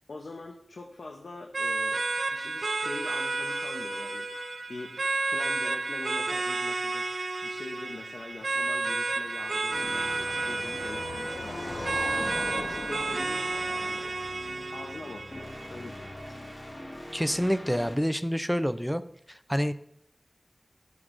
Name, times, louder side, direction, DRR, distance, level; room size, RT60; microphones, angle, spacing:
voice 1, 0.1-11.8 12.3-14.2 14.7-16.5, left 2 dB, 85° left, 2 dB, 0.6 m, -44 dB
sound 1, 1.5-16.5, right 3 dB, 75° right, 0.4 m, -31 dB
Car passing by, 8.8-16.0, left 1 dB, 70° left, 1.1 m, -41 dB
sound 2, 9.7-17.9, left 1 dB, 45° left, 1.5 m, -45 dB
voice 2, 17.1-19.0 19.3-19.7, equal, ahead, 12 dB, 0.4 m, -27 dB
11.0 x 6.3 x 2.5 m, 0.70 s
wide cardioid pair, 60°, 0 cm